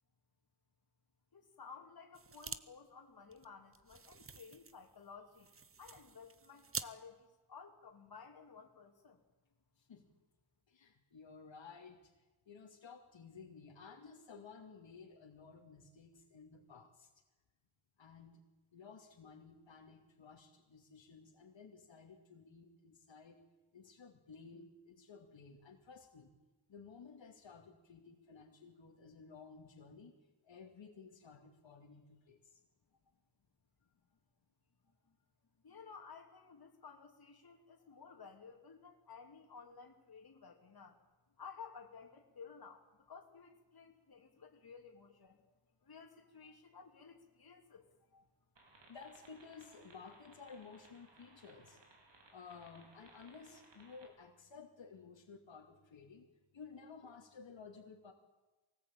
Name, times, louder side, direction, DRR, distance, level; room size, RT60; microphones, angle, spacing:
voice 1, 1.3-5.5 5.8-9.2 34.8-35.2 35.6-41.0 41.4-48.3, left 5 dB, 50° left, 2 dB, 3.0 m, -55 dB
sound 1, 2.1-2.6 2.9-3.0 3.3-6.9, right 5 dB, 30° right, 0.8 m, -48 dB
voice 2, 9.8-10.1 10.7-17.1 18.0-18.4 18.7-23.4 23.7-26.3 26.7-30.1 30.4-32.6 48.9-51.8 52.3-56.3 56.5-58.1, left 5 dB, 70° left, 2 dB, 2.5 m, -55 dB
sound 2, 48.6-54.1, right 2 dB, 65° right, 4.8 m, -63 dB
24.0 x 18.5 x 8.9 m, 1.2 s
wide cardioid pair, 160°, 47 cm